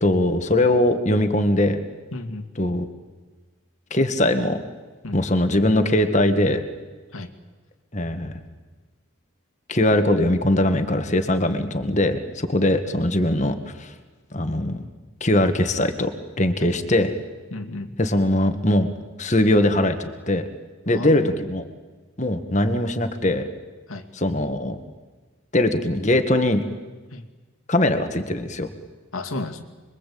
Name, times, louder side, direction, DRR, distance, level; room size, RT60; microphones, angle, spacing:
voice 1, 0.0-1.8 2.6-2.9 3.9-4.6 5.1-6.6 7.9-8.4 9.7-13.9 14.3-14.8 15.2-16.1 16.4-17.1 18.0-18.9 19.2-20.5 20.9-21.6 22.2-23.4 24.1-24.8 25.5-26.6 27.7-28.7, left 1 dB, 35° left, 8 dB, 1.8 m, -21 dB
voice 2, 2.1-2.5 5.0-5.2 7.1-7.3 17.5-17.9 20.9-21.3 23.9-24.0 27.1-27.2 29.1-29.6, left 2 dB, 90° left, 5 dB, 2.4 m, -32 dB
26.5 x 23.0 x 8.6 m, 1.3 s
head